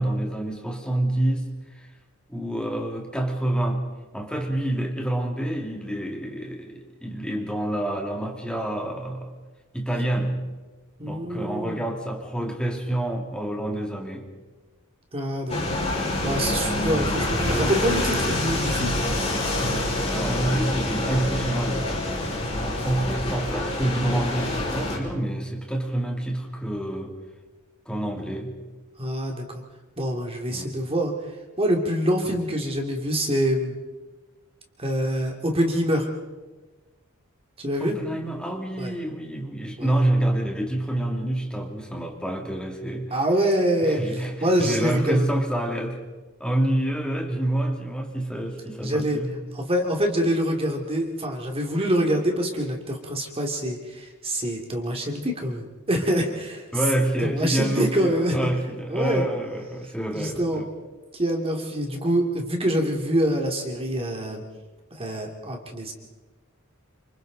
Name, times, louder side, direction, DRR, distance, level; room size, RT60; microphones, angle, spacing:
voice 1, 0.0-1.9 2.3-3.8 4.1-9.3 9.7-10.4 11.0-14.3 16.5-16.7 19.6-21.9 22.6-27.1 27.9-28.6 30.5-30.8 32.3-32.4 37.8-43.2 43.8-46.0 46.4-49.4 56.7-60.7, right 1 dB, 5° left, 0 dB, 2.7 m, -27 dB
voice 2, 11.0-11.8 15.1-15.6 16.2-19.0 29.0-29.6 30.0-31.1 31.6-33.8 34.8-36.1 37.6-38.0 38.8-38.9 39.8-40.0 43.1-45.4 48.8-49.2 49.5-56.7 57.2-58.4 58.9-59.3 60.1-60.6 61.1-64.4 64.9-65.9, equal, 30° right, 2 dB, 2.5 m, -25 dB
sound 1, 15.5-25.0, left 1 dB, 30° left, 5.0 m, -26 dB
29.0 x 26.5 x 4.0 m, 1.2 s
head